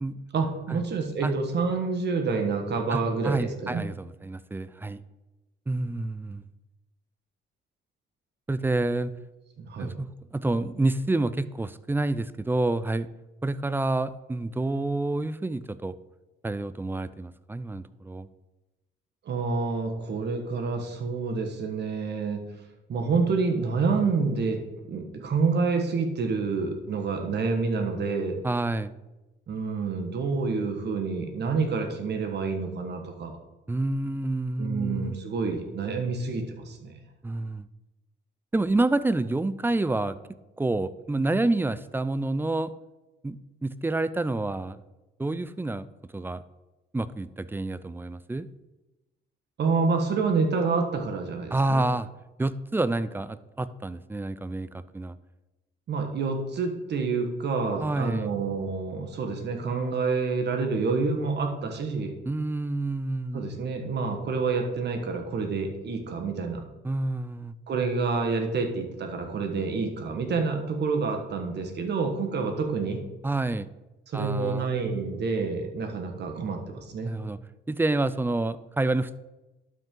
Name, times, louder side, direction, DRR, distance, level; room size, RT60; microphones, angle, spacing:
voice 1, 0.3-3.8 9.6-9.9 19.2-22.4 22.9-24.6 24.9-28.4 29.5-33.3 34.6-37.0 49.6-51.8 55.9-62.1 63.3-66.6 67.7-73.0 74.1-77.1, right 4 dB, 60° right, 4 dB, 1.5 m, -28 dB
voice 2, 2.9-5.0 5.7-6.4 8.5-9.1 9.8-13.1 13.4-15.9 16.4-18.3 28.4-28.9 33.7-35.2 37.2-37.7 38.5-40.2 40.6-42.7 43.2-44.8 45.2-45.9 46.1-46.4 46.9-48.5 51.5-52.1 52.4-55.2 57.8-58.3 62.3-63.5 66.8-67.5 73.2-73.7 74.1-74.7 77.1-77.4 77.7-79.1, right 2 dB, 10° right, 15 dB, 0.4 m, -28 dB
12.0 x 5.5 x 3.8 m, 1.0 s
cardioid pair, 90°, 20 cm